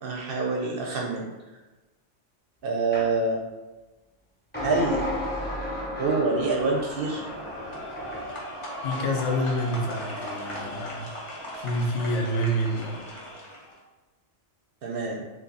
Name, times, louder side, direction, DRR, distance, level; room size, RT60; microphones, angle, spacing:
voice 1, 0.0-1.3 2.6-3.4 4.6-5.0 6.0-7.2 14.8-15.2, right 3 dB, 60° right, -1 dB, 0.6 m, -26 dB
sound 1, 2.9-3.1 4.5-8.3, left 1 dB, 10° left, 0.9 m, -33 dB
sound 2, 6.4-13.7, equal, 35° left, 0.5 m, -37 dB
voice 2, 8.8-11.2 11.5-13.0, equal, 75° left, 1 dB, 0.9 m, -28 dB
2.9 x 2.6 x 3.8 m, 1.2 s
omnidirectional pair, 1.2 m